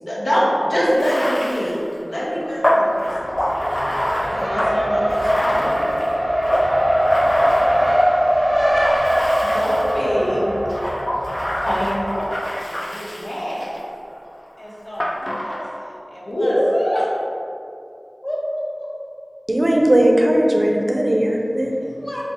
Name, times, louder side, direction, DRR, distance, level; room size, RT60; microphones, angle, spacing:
voice 1, 0.0-3.1 4.2-5.7 16.3-17.1, equal, 75° left, -8 dB, 1.2 m, -22 dB
Bathtub (filling or washing), 0.9-8.3 8.8-10.1 10.7-13.9 15.0-16.0, equal, 25° left, 0.3 m, -26 dB
Race car auto racing, 3.1-12.2, equal, 5° right, 0.9 m, -21 dB
voice 2, 8.0-8.5 9.3-10.5 11.5-13.8 14.6-15.1 15.4-16.6 18.2-18.9 21.8-22.2, equal, 40° left, -7 dB, 1.2 m, -29 dB
voice 3, 19.5-21.7, right 1 dB, 50° right, 0 dB, 0.5 m, -17 dB
3.7 x 3.5 x 3.9 m, 2.6 s
wide cardioid pair, 45°, 0 cm